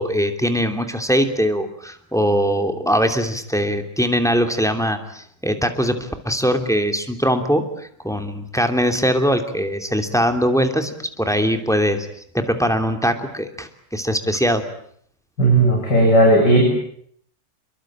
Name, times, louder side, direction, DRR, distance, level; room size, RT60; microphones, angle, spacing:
voice 1, 0.0-12.1 12.3-14.6, equal, ahead, 6 dB, 2.7 m, -21 dB
voice 2, 15.4-16.8, right 1 dB, 55° left, 0 dB, 8.0 m, -14 dB
29.0 x 23.0 x 8.9 m, 0.67 s
omnidirectional pair, 2.3 m